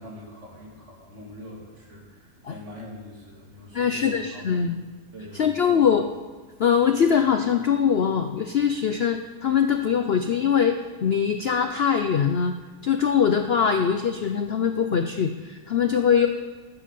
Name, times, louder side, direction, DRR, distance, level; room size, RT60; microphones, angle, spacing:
voice 1, 0.0-4.7 5.1-6.0, left 1 dB, 45° right, -3 dB, 3.3 m, -43 dB
voice 2, 3.7-4.8 5.3-6.0 6.6-12.5 12.8-16.3, left 7 dB, 70° left, 7 dB, 0.6 m, -22 dB
12.5 x 7.5 x 7.6 m, 1.3 s
omnidirectional pair, 1.8 m